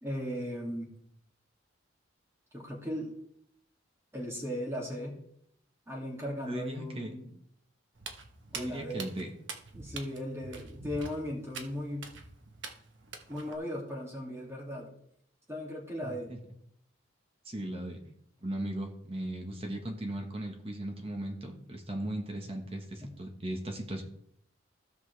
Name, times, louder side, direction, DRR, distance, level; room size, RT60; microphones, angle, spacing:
voice 1, 0.0-0.9 2.5-3.1 4.1-5.2 5.9-7.4 8.5-9.1 9.7-12.1 13.3-14.9 15.5-16.3 23.0-23.1, equal, 15° right, -2 dB, 2.5 m, -37 dB
voice 2, 6.4-7.1 8.5-9.3 16.0-16.4 17.4-18.0 18.4-24.0, right 1 dB, 30° right, 2 dB, 1.3 m, -37 dB
Walk footsteps, 8.0-13.6, right 4 dB, 75° right, 1.2 m, -45 dB
16.0 x 5.9 x 3.4 m, 0.70 s
head